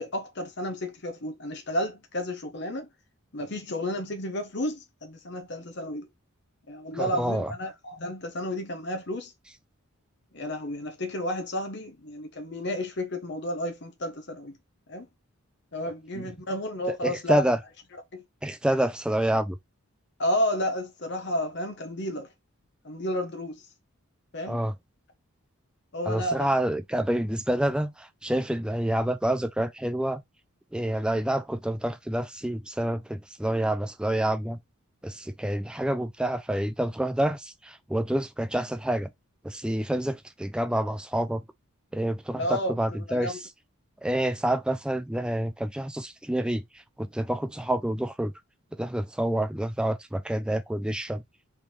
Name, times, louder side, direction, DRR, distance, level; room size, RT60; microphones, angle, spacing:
voice 1, 0.0-2.9 3.3-6.1 6.7-9.3 10.3-14.6 14.9-15.1 15.7-17.5 18.1-18.2 20.2-22.3 22.8-23.6 24.3-24.6 25.9-26.5 42.3-43.4, equal, 50° left, 0.9 m, -31 dB
voice 2, 6.9-7.5 16.1-16.3 17.0-17.6 18.4-19.6 24.5-24.7 26.1-30.2 30.7-34.6 35.0-39.1 39.4-41.4 41.9-43.4 44.0-46.6 47.0-48.3 48.7-51.2, right 1 dB, 5° right, 0.3 m, -28 dB
4.5 x 3.5 x 3.1 m
head